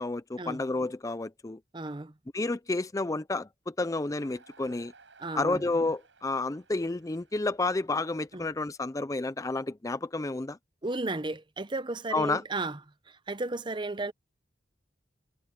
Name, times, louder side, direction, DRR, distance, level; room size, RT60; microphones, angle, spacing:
voice 1, 0.0-1.6 2.3-4.9 5.3-10.6 12.1-12.4, left 2 dB, 20° left, 0.4 m, -30 dB
voice 2, 1.7-2.1 5.2-5.6 8.3-8.4 10.8-12.8 13.3-14.1, right 2 dB, 25° right, 0.7 m, -33 dB
Crowd, 4.1-9.3, right 4 dB, 90° right, 5.3 m, -60 dB
head